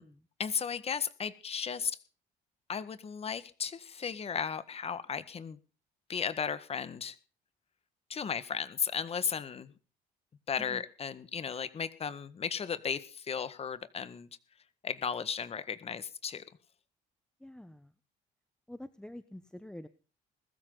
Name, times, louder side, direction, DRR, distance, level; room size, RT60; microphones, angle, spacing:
voice 1, 0.4-2.0 2.7-5.6 6.1-7.2 8.1-9.7 10.5-14.3 14.8-16.4, left 6 dB, 35° left, 14 dB, 1.7 m, -35 dB
voice 2, 17.4-17.9 18.7-19.9, left 1 dB, 5° left, 12 dB, 1.0 m, -47 dB
21.0 x 13.5 x 4.0 m, 0.38 s
cardioid pair, 110°, 17 cm